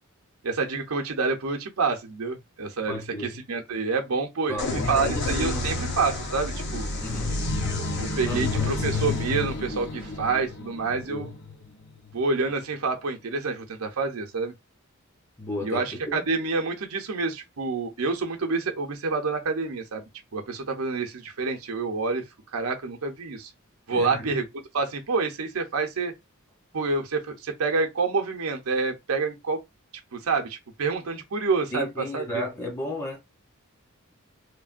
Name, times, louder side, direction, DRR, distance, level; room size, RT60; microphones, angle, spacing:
voice 1, 0.4-3.0 3.5-6.9 8.0-11.3 12.1-14.5 15.6-20.0 20.3-22.2 22.5-23.5 23.9-24.4 24.7-26.1 26.7-29.6 30.1-32.4, right 4 dB, 85° right, 0.7 m, -28 dB
voice 2, 2.9-3.4 4.5-5.8 7.0-7.4 8.2-9.0 11.1-11.3 15.4-16.3 23.9-24.3 31.7-33.2, left 1 dB, 15° left, 0.6 m, -34 dB
sound 1, 4.6-12.2, left 3 dB, 55° left, 0.7 m, -30 dB
3.2 x 2.1 x 2.4 m
head